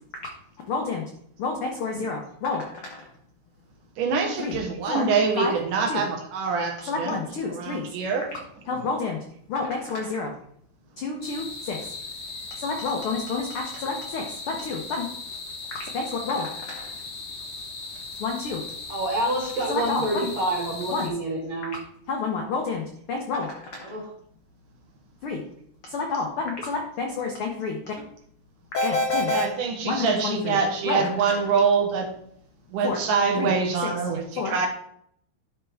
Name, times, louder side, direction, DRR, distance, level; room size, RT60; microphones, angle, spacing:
voice 1, 0.7-1.0 1.4-3.0 4.4-4.6 4.9-5.0 5.4-5.5 5.9-6.0 6.9-7.9 8.7-9.2 9.5-10.3 11.0-11.8 12.6-15.1 15.9-16.9 18.2-18.6 19.7-20.3 20.9-21.1 22.1-23.5 23.7-23.9 25.2-25.4 25.9-27.9 28.7-29.4 29.8-30.6 30.8-31.1 32.8-33.0 33.4-33.5 33.8-33.9 34.4-34.5, left 4 dB, 75° left, 1 dB, 1.2 m, -29 dB
voice 2, 4.0-7.2 7.5-8.3 29.3-32.1 32.7-34.7, right 5 dB, 80° right, 2 dB, 2.8 m, -25 dB
sound 1, 11.2-21.1, left 3 dB, 55° left, 1.3 m, -38 dB
voice 3, 18.9-21.7 23.8-24.1, right 1 dB, 60° right, -4 dB, 3.9 m, -28 dB
11.5 x 4.6 x 3.4 m, 0.68 s
omnidirectional pair, 3.7 m